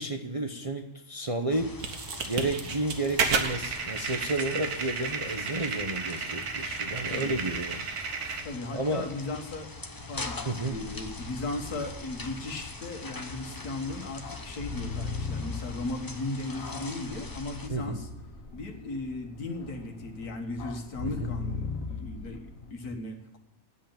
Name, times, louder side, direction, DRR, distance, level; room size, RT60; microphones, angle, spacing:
voice 1, 0.0-8.5 8.7-9.1 10.4-10.8 17.7-18.0 21.0-21.3, right 2 dB, 30° right, 4 dB, 0.7 m, -32 dB
sound 1, 1.5-17.7, left 2 dB, 20° left, 0.6 m, -43 dB
sound 2, 1.8-8.4, right 5 dB, 80° right, 1.7 m, -32 dB
voice 2, 8.4-9.7 10.1-10.4 10.7-18.1 18.5-23.4, left 2 dB, 80° left, 4 dB, 2.0 m, -37 dB
sound 3, 10.0-22.7, left 4 dB, 65° left, 1.5 m, -40 dB
10.0 x 8.0 x 8.7 m, 0.82 s
omnidirectional pair, 1.6 m